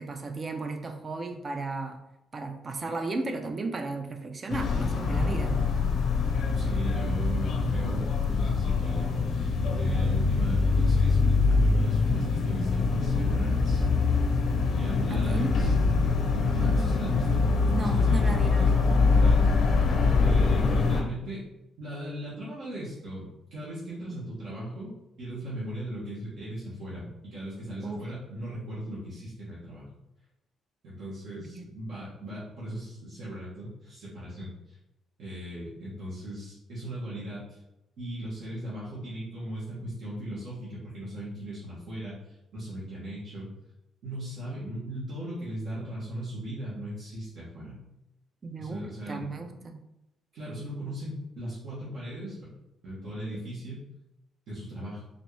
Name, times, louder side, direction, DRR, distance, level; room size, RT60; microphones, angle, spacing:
voice 1, 0.0-2.0 2.3-5.6 15.1-15.5 17.7-18.8 27.8-28.0 31.4-31.7 48.4-49.8, right 3 dB, 40° right, 6 dB, 0.5 m, -34 dB
sound 1, 4.5-21.0, left 4 dB, 65° left, 0.6 m, -24 dB
voice 2, 6.5-13.8 14.7-17.4 17.8-19.4 20.1-21.4 21.8-24.9 25.2-29.9 30.8-34.7 35.2-37.6 38.0-43.5 44.0-47.8 48.6-49.5 50.3-52.5 52.8-53.8 54.5-55.0, right 1 dB, 70° right, -9 dB, 1.4 m, -38 dB
4.1 x 2.6 x 3.3 m, 0.88 s
cardioid pair, 90°, 0 cm